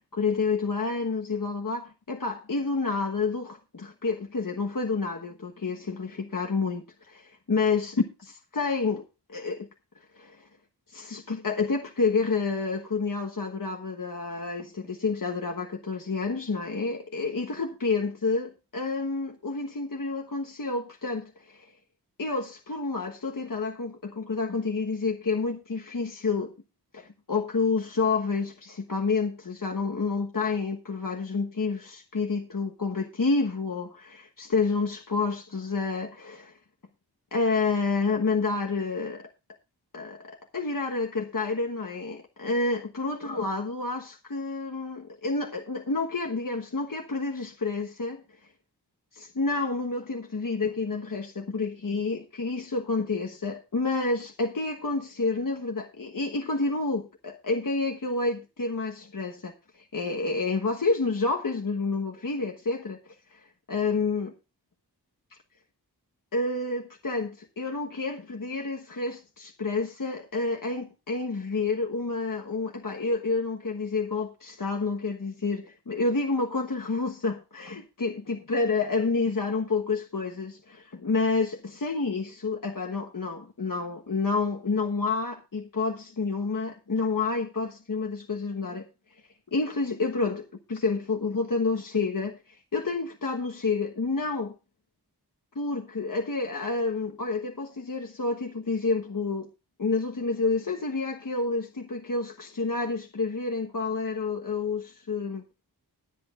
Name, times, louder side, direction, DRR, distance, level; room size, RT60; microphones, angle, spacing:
voice 1, 0.1-9.0 9.3-9.7 10.1-10.4 10.9-21.7 22.2-26.5 26.9-36.6 37.3-39.3 39.9-48.2 49.1-59.5 59.8-64.3 66.3-88.8 89.5-94.5 95.5-99.5 99.8-105.4, left 3 dB, 55° left, 1.3 m, -29 dB
21.0 x 7.8 x 2.5 m
wide cardioid pair, 50°, 40 cm